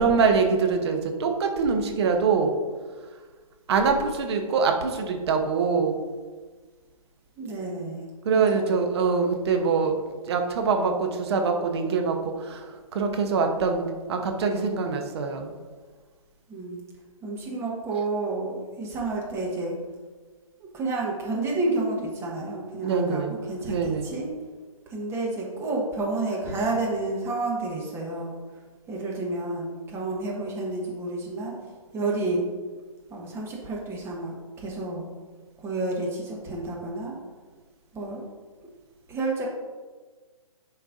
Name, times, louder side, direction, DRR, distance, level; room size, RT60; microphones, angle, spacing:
voice 1, 0.0-2.5 3.7-6.0 8.2-9.9 10.3-15.6 22.8-23.4 23.7-24.1, right 5 dB, 45° right, 4 dB, 1.0 m, -24 dB
voice 2, 7.4-8.0 8.5-8.9 16.5-16.8 17.2-19.7 20.7-24.3 24.9-28.4 28.9-31.5 31.9-32.5 33.1-35.1 35.6-37.1 37.9-38.2 39.1-39.5, right 2 dB, 15° right, -3 dB, 1.3 m, -30 dB
11.0 x 4.5 x 2.6 m, 1.4 s
figure-of-eight pair, 135°, 18 cm